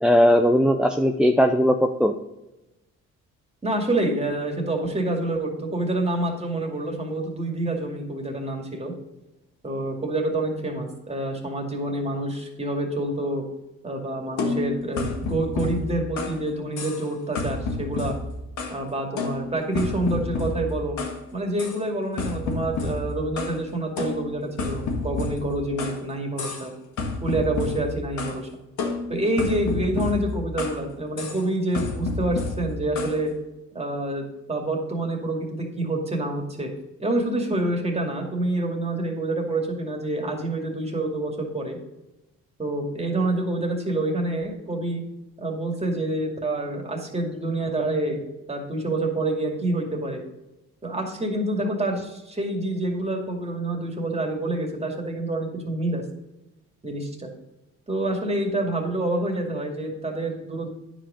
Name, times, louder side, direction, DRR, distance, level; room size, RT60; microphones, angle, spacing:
voice 1, 0.0-2.1, equal, 5° right, 5 dB, 0.5 m, -18 dB
voice 2, 3.6-8.9 9.6-13.4 13.8-18.1 18.7-21.0 21.3-26.7 27.2-28.5 29.1-33.3 33.7-36.7 37.0-41.8 42.6-45.0 45.4-50.2 50.8-56.0 56.8-57.3 57.9-60.7, right 1 dB, 20° right, 1 dB, 2.3 m, -27 dB
sound 1, 14.4-16.4 16.8-17.1 17.4-18.8 19.2-21.2 21.6-21.8 22.2-23.6 24.0-26.0 26.4-26.7 27.0-28.4 28.8-30.8 31.2-31.4 31.7-33.2, left 3 dB, 75° left, 1.9 m, -30 dB
9.8 x 5.1 x 5.1 m, 0.97 s
cardioid pair, 90°, 30 cm